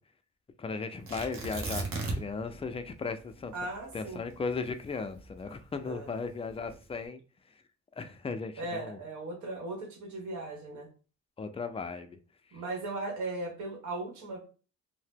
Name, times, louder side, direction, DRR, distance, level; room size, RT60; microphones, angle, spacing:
voice 1, 0.6-3.5 3.9-7.2 8.0-9.0 11.4-12.2, left 4 dB, 20° left, 0.3 m, -36 dB
Tearing, 1.1-2.5 2.7-2.8 3.4-5.8 6.5-6.9, right 3 dB, 45° right, 0.8 m, -36 dB
voice 2, 3.5-4.2 5.8-6.1 8.6-10.9 12.5-14.4, right 2 dB, 70° right, 1.2 m, -37 dB
2.8 x 2.1 x 3.4 m
cardioid pair, 90°, 30 cm